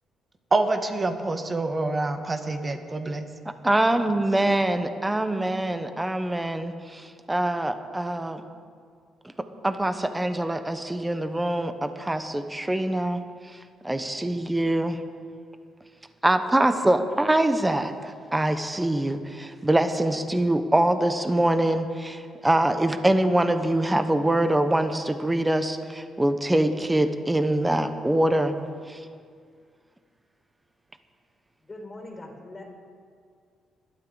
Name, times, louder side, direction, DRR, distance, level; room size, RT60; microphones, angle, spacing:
voice 1, 0.5-3.2, right 2 dB, 30° right, 7 dB, 1.4 m, -26 dB
voice 2, 3.6-8.4 9.6-13.2 13.8-15.0 16.2-28.5 28.9-29.0, right 1 dB, 10° right, 9 dB, 1.0 m, -24 dB
voice 3, 31.6-32.6, left 2 dB, 25° left, 0 dB, 4.4 m, -41 dB
21.0 x 12.5 x 4.0 m, 2.1 s
cardioid pair, 90°, 0 cm